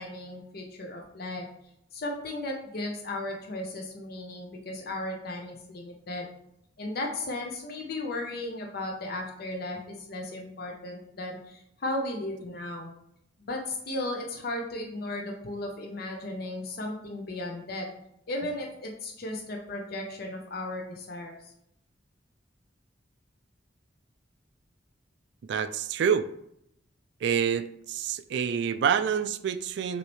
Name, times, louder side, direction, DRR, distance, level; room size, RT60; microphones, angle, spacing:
voice 1, 0.0-1.5 1.9-6.3 6.8-12.9 13.4-17.9 18.3-21.5, left 1 dB, 60° left, 1 dB, 0.7 m, -35 dB
voice 2, 25.5-26.3 27.2-30.0, right 7 dB, 65° right, 12 dB, 0.3 m, -27 dB
6.1 x 2.7 x 3.0 m, 0.76 s
head